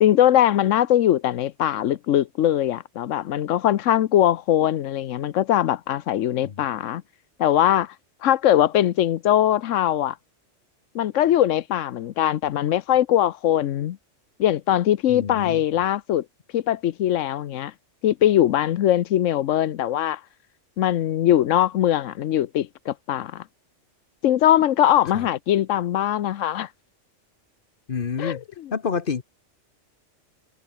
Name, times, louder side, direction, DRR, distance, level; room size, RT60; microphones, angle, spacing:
voice 1, 0.0-7.0 7.4-7.9 8.2-10.2 10.9-14.0 14.4-16.2 16.5-17.7 18.0-20.2 20.8-23.4 24.2-26.7 28.2-28.4, left 11 dB, 80° left, 1.1 m, -21 dB
voice 2, 15.1-15.6 25.1-25.3 27.9-28.4 28.7-29.2, left 6 dB, 50° left, 1.1 m, -28 dB
omnidirectional pair, 1.3 m